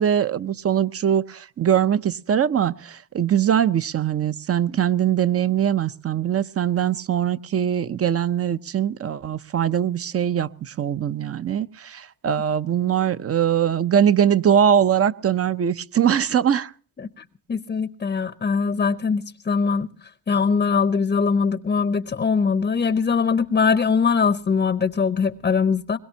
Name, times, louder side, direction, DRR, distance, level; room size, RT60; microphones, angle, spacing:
voice 1, 0.0-16.7, right 9 dB, 40° right, 0.6 m, -22 dB
voice 2, 17.5-26.0, left 5 dB, 25° left, 0.7 m, -22 dB
21.5 x 21.5 x 2.8 m
cardioid pair, 80°, 36 cm